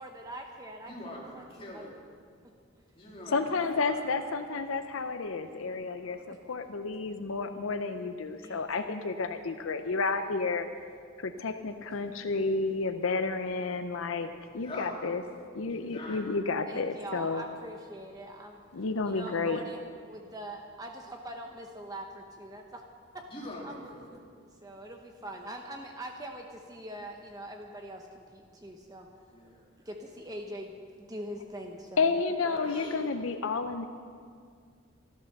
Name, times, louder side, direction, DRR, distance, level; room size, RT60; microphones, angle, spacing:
voice 1, 0.0-0.9 1.3-1.8 6.3-6.4 8.4-8.6 16.7-22.8 23.4-24.2 24.6-29.1 29.8-32.6, right 1 dB, 20° right, 2 dB, 0.9 m, -43 dB
voice 2, 0.8-1.9 2.9-4.1 5.8-6.2 14.5-14.9 15.7-16.3 23.3-24.2 29.3-29.6 32.4-33.0, left 1 dB, 25° left, -4 dB, 3.1 m, -44 dB
voice 3, 3.3-6.2 6.5-10.7 11.2-15.2 15.5-17.4 18.7-19.6 32.0-33.9, left 4 dB, 75° left, 8 dB, 0.7 m, -31 dB
14.0 x 12.0 x 6.6 m, 2.1 s
head